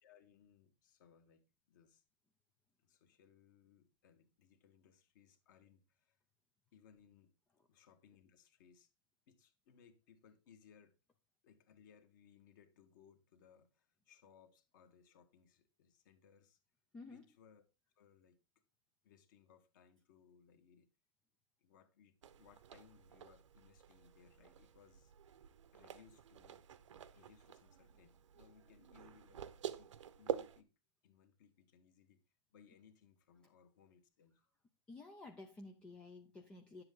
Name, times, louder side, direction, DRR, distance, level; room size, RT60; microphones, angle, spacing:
voice 1, 0.0-2.0 2.8-6.2 6.7-7.3 7.7-8.9 9.3-10.9 11.4-16.6 17.1-17.6 17.9-18.4 19.0-20.9 21.6-25.1 25.7-26.9 27.1-30.7 31.0-32.2 32.5-34.4, left 7 dB, 40° left, 1.6 m, -66 dB
voice 2, 16.9-17.3 34.9-36.8, left 3 dB, 5° left, 0.4 m, -52 dB
sound 1, 22.2-30.6, right 9 dB, 85° right, 1.0 m, -48 dB
10.5 x 7.7 x 3.8 m
supercardioid pair, 180°, 16 cm